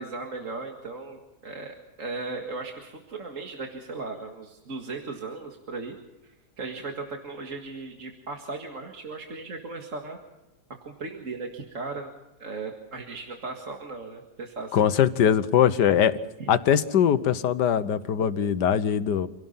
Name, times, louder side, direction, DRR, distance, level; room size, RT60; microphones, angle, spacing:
voice 1, 0.0-6.0 6.2-10.2 10.9-12.1 12.4-14.9 16.4-16.5, right 3 dB, 50° right, 2 dB, 2.2 m, -37 dB
voice 2, 14.7-16.2 16.5-19.3, left 9 dB, 90° left, 13 dB, 1.6 m, -21 dB
27.5 x 17.5 x 5.7 m, 1.0 s
omnidirectional pair, 1.8 m